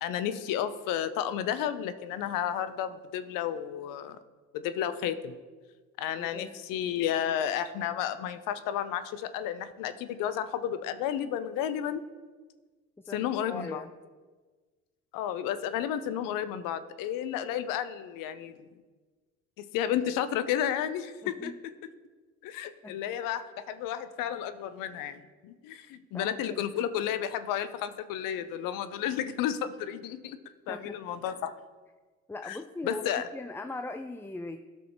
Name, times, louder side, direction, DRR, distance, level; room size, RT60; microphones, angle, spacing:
voice 1, 0.0-4.2 4.5-5.4 6.0-12.0 13.1-13.8 15.1-18.6 19.6-21.5 22.4-30.4 30.7-31.5 32.4-32.6 32.8-33.3, left 10 dB, 65° left, 12 dB, 0.7 m, -32 dB
voice 2, 6.2-6.6 13.0-13.9 21.2-21.6 22.8-23.0 26.1-26.6 30.7-31.0 32.3-34.6, left 2 dB, 5° left, 8 dB, 0.4 m, -40 dB
12.5 x 6.1 x 3.0 m, 1.4 s
hypercardioid pair, 55°, 36 cm